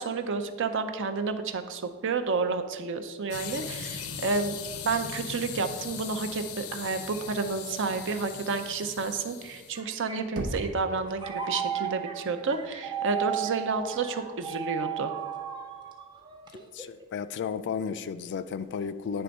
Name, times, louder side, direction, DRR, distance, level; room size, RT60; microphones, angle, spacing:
voice 1, 0.0-4.6 4.8-15.1, right 4 dB, 60° right, 8 dB, 0.5 m, -30 dB
sound 1, 3.3-9.8, left 7 dB, 90° left, 0.6 m, -39 dB
sound 2, 9.5-17.0, right 9 dB, 20° right, 0.7 m, -35 dB
Knock, 10.4-11.3, equal, 85° right, 0.9 m, -36 dB
voice 2, 16.7-19.2, left 6 dB, 55° left, 13 dB, 0.3 m, -33 dB
9.6 x 3.4 x 5.2 m, 1.4 s
head